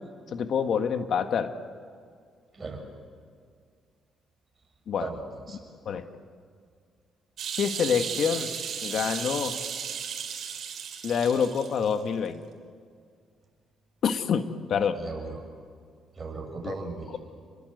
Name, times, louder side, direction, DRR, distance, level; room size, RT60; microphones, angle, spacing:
voice 1, 0.3-1.5 4.9-5.1 5.8-6.0 7.6-8.5 8.8-9.6 11.0-12.4 14.0-15.0 16.6-16.7, left 7 dB, 65° left, 8 dB, 1.6 m, -26 dB
sound 1, 7.4-11.9 12.3-12.4, right 7 dB, 65° right, 4.6 m, -35 dB
voice 2, 15.0-15.4 16.2-17.2, right 3 dB, 35° right, 2 dB, 7.0 m, -37 dB
29.5 x 21.5 x 8.0 m, 2.1 s
cardioid pair, 90°, 0 cm